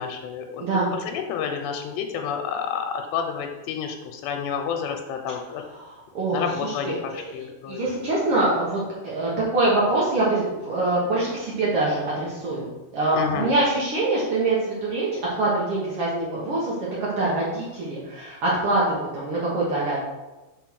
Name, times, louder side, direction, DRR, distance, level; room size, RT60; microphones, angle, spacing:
voice 1, 0.0-0.6 0.9-5.6 6.3-7.9 13.1-13.5, left 7 dB, 85° left, 4 dB, 2.8 m, -29 dB
voice 2, 5.8-12.6 12.9-16.7 17.0-20.0, right 2 dB, 80° right, -6 dB, 1.2 m, -24 dB
6.3 x 4.5 x 6.1 m, 1.1 s
omnidirectional pair, 4.9 m